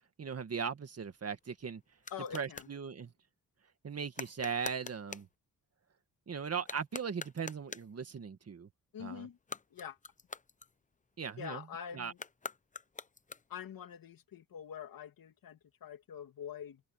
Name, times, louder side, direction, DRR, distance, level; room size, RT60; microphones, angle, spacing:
voice 1, 0.2-1.8 2.3-3.1 3.8-5.3 6.3-8.7 9.0-9.3 11.2-11.6 11.9-12.1, right 6 dB, 45° right, 1.9 m, -38 dB
sound 1, 1.0-2.8 4.1-5.4 6.6-8.0 9.3-11.2 12.1-13.7, left 4 dB, 20° left, 0.7 m, -46 dB
voice 2, 2.1-2.7 8.9-9.4 9.7-10.0 11.4-12.2 13.5-16.8, left 8 dB, 75° left, 2.6 m, -45 dB
cardioid pair, 115°, 35 cm